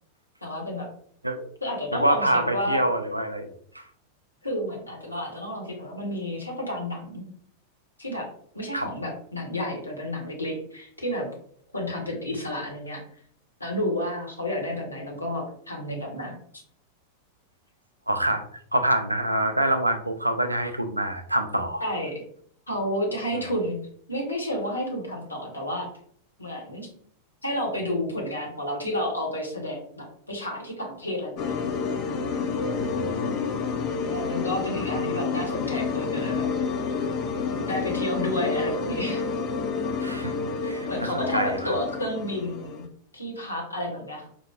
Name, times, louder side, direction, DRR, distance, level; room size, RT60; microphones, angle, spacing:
voice 1, 0.4-0.9 1.6-2.8 4.4-7.2 8.0-8.3 8.5-11.3 11.7-13.0 13.6-16.4 21.8-22.2 22.7-23.8 24.1-25.9 26.4-26.9 27.4-31.6 34.1-36.5 37.5-39.3 40.9-42.9 43.1-44.3, left 1 dB, 85° left, -1 dB, 0.9 m, -31 dB
voice 2, 1.9-3.5 3.7-3.8 8.7-8.9 18.1-18.4 18.7-21.8 32.8-33.4 40.0-40.3 40.6-41.7, right 1 dB, 85° right, 7 dB, 0.3 m, -26 dB
sound 1, 31.4-42.9, left 5 dB, 40° left, 0.4 m, -29 dB
4.5 x 2.0 x 2.3 m, 0.62 s
figure-of-eight pair, 90°, 0 cm